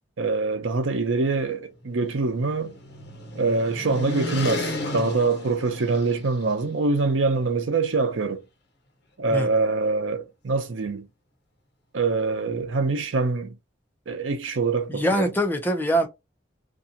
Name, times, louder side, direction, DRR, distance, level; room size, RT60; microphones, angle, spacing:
voice 1, 0.2-2.7 3.3-8.4 9.2-11.1 11.9-13.5 14.1-15.3, right 3 dB, 90° right, 0.6 m, -24 dB
sound 1, 1.7-6.5, left 2 dB, 60° left, 1.1 m, -34 dB
voice 2, 14.9-16.1, equal, 10° left, 0.6 m, -23 dB
2.6 x 2.4 x 2.7 m
head